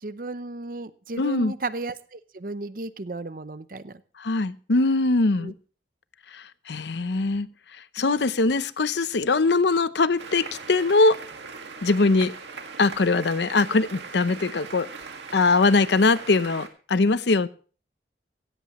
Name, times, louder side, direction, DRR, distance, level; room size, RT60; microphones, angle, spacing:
voice 1, 0.0-4.0 5.4-5.5, right 2 dB, 50° right, 14 dB, 0.7 m, -34 dB
voice 2, 1.2-1.5 4.2-5.5 6.3-7.5 8.0-11.2 11.8-12.3 12.8-14.9 15.3-17.5, left 3 dB, 75° left, 15 dB, 0.7 m, -22 dB
sound 1, 10.2-16.7, right 4 dB, 85° right, 2.0 m, -40 dB
16.5 x 16.0 x 3.1 m, 0.39 s
head